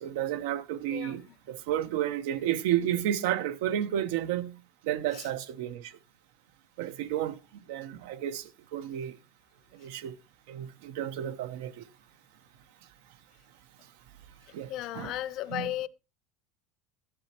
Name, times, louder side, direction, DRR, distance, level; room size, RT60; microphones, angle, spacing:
voice 1, 0.0-4.5 4.8-5.9 6.8-7.4 7.7-9.1 9.8-10.2 10.5-11.8 14.5-15.1 15.5-15.7, right 11 dB, 85° right, 0.9 m, -32 dB
voice 2, 14.7-15.9, left 14 dB, 45° left, 0.6 m, -35 dB
13.5 x 11.5 x 2.9 m
cardioid pair, 160°, 0 cm